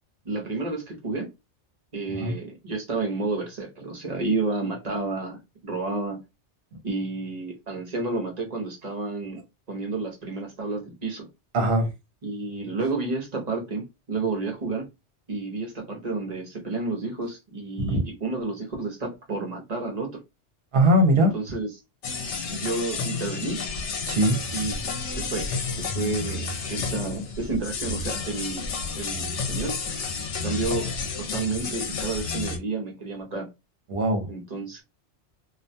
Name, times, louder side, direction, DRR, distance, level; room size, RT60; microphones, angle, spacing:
voice 1, 0.2-1.3 1.9-6.2 6.8-9.4 9.7-11.3 12.2-14.9 15.3-20.2 21.2-21.7 22.5-23.6 24.5-24.7 25.1-28.7 28.9-29.8 30.4-30.9 31.2-33.5 34.3-34.8, right 3 dB, 40° right, 0.8 m, -31 dB
voice 2, 11.5-11.9 17.8-18.0 20.7-21.4 24.1-24.4 26.8-26.9 33.9-34.3, right 1 dB, 65° right, 1.0 m, -21 dB
sound 1, 22.0-32.6, left 4 dB, 80° left, 1.0 m, -31 dB
2.5 x 2.2 x 2.6 m
omnidirectional pair, 1.2 m